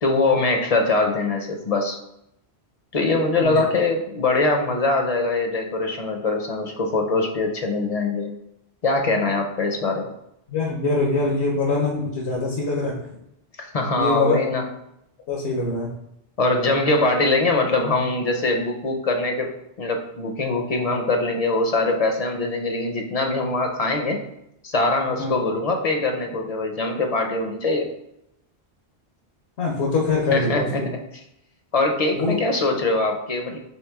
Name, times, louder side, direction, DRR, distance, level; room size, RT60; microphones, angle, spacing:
voice 1, 0.0-2.0 2.9-8.3 8.8-10.1 13.6-14.6 16.4-19.5 19.8-24.2 24.6-27.9 30.3-30.8 31.7-33.6, left 2 dB, 45° left, 3 dB, 0.5 m, -22 dB
voice 2, 10.5-12.9 14.0-14.4 15.3-15.9 25.2-25.3 29.6-30.7 32.2-32.4, left 3 dB, 80° left, -2 dB, 1.1 m, -23 dB
4.6 x 3.3 x 3.4 m, 0.80 s
omnidirectional pair, 1.1 m